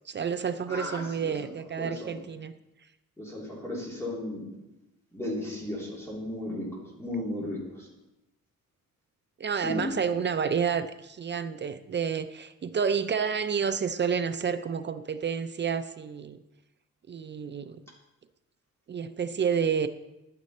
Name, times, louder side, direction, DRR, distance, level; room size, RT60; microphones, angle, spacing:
voice 1, 0.1-2.5 9.4-16.4 17.1-17.8 18.9-19.9, right 6 dB, 35° right, 11 dB, 0.4 m, -29 dB
voice 2, 0.7-1.5 1.8-2.2 3.2-4.5 5.1-7.9 9.6-9.9, left 1 dB, 10° left, -4 dB, 3.1 m, -35 dB
11.5 x 9.5 x 4.1 m, 0.93 s
wide cardioid pair, 155°, 33 cm